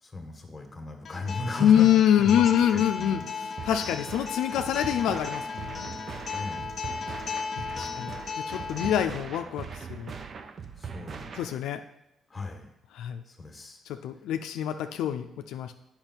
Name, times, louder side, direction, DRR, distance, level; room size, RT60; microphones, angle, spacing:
voice 1, 0.0-3.2 6.3-6.8 7.7-8.2 10.7-11.4 12.3-12.7 13.2-13.8 14.1-14.2, left 2 dB, 20° left, 4 dB, 1.5 m, -37 dB
Acoustic guitar, 1.0-9.0, left 5 dB, 50° left, 1.2 m, -36 dB
voice 2, 1.6-5.9 7.6-8.1 8.5-10.1 11.4-11.8 13.0-13.2 14.0-15.7, left 10 dB, 85° left, 7 dB, 0.4 m, -25 dB
sound 1, 3.6-11.6, right 6 dB, 45° right, 0.6 m, -41 dB
8.7 x 5.7 x 4.5 m, 0.82 s
cardioid pair, 90°, 0 cm